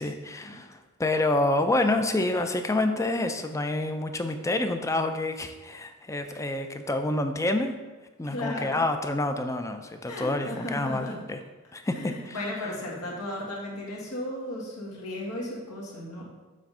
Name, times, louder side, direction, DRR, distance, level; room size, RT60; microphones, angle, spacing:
voice 1, 0.0-7.7 8.2-11.4 11.7-12.4, left 2 dB, 15° left, 7 dB, 0.4 m, -28 dB
voice 2, 8.2-8.8 10.0-11.2 11.9-16.2, left 1 dB, 80° left, -4 dB, 1.8 m, -35 dB
7.4 x 3.4 x 5.4 m, 1.2 s
head